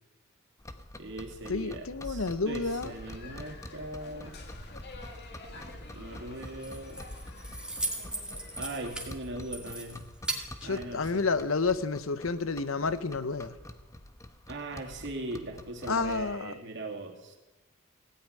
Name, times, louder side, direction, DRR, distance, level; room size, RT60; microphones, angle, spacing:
sound 1, 0.6-16.4, left 1 dB, 15° left, 0.9 m, -47 dB
voice 1, 1.0-4.4 5.5-5.6 5.9-7.0 8.6-10.0 10.6-11.3 14.5-17.4, right 2 dB, 60° right, 2 dB, 2.7 m, -40 dB
voice 2, 1.5-2.9 10.6-13.5 15.9-16.5, left 4 dB, 70° left, 14 dB, 0.8 m, -30 dB
sound 2, 2.7-9.1, left 2 dB, 55° left, 2.1 m, -48 dB
Keys jangling, 6.4-11.4, right 2 dB, 5° right, 2.1 m, -39 dB
16.5 x 8.7 x 9.5 m, 1.1 s
head